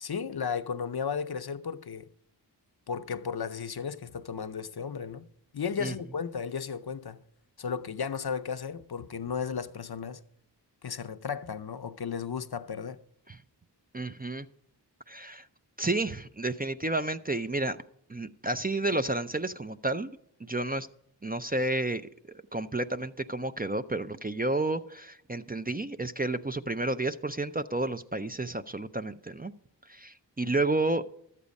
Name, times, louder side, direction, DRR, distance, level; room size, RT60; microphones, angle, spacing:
voice 1, 0.0-2.1 2.9-5.2 5.5-7.2 7.6-10.2 10.8-13.0, left 6 dB, 60° left, 0.6 m, -34 dB
voice 2, 13.9-14.5 15.1-15.5 15.8-17.8 18.1-20.1 20.5-20.9 21.2-29.5 29.9-31.1, right 2 dB, 20° right, 0.4 m, -31 dB
13.0 x 8.3 x 5.2 m
wide cardioid pair, 50°, 43 cm